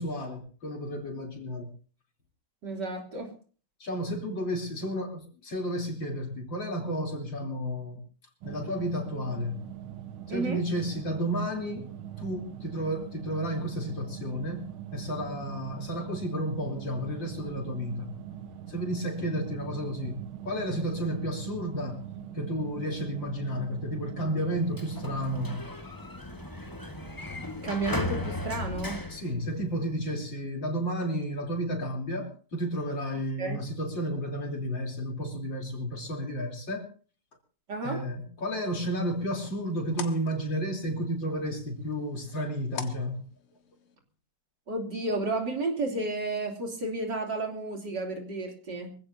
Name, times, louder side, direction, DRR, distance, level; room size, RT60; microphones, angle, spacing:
voice 1, 0.0-1.7 3.8-8.0 8.4-9.6 10.3-11.9 12.2-14.6 14.9-18.2 18.7-22.1 22.3-25.6 29.1-36.9 37.8-43.2, equal, 60° left, 2 dB, 4.1 m, -32 dB
voice 2, 2.6-3.3 10.3-10.6 27.6-29.0 33.4-33.6 37.7-38.0 44.7-49.0, right 2 dB, 50° right, 3 dB, 3.6 m, -32 dB
sound 1, 8.4-25.6, right 9 dB, 75° right, 2.0 m, -42 dB
Sliding door, 24.5-30.1, left 2 dB, 10° left, 1.2 m, -37 dB
sound 2, 38.5-43.9, left 7 dB, 75° left, 2.4 m, -46 dB
24.5 x 16.0 x 2.8 m, 0.40 s
omnidirectional pair, 2.4 m